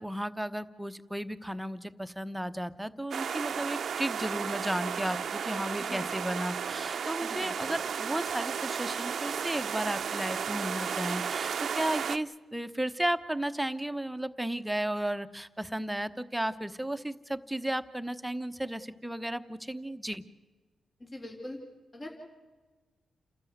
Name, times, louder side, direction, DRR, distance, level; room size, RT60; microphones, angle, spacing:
voice 1, 0.0-20.2, right 1 dB, 5° right, 10 dB, 1.1 m, -34 dB
sound 1, 3.1-12.2, right 7 dB, 65° right, 0.7 m, -33 dB
voice 2, 5.8-6.1 7.2-7.6 21.0-21.6 21.9-22.1, left 1 dB, 35° left, 1 dB, 3.6 m, -42 dB
29.0 x 13.0 x 9.5 m, 1.3 s
cardioid pair, 65°, 0 cm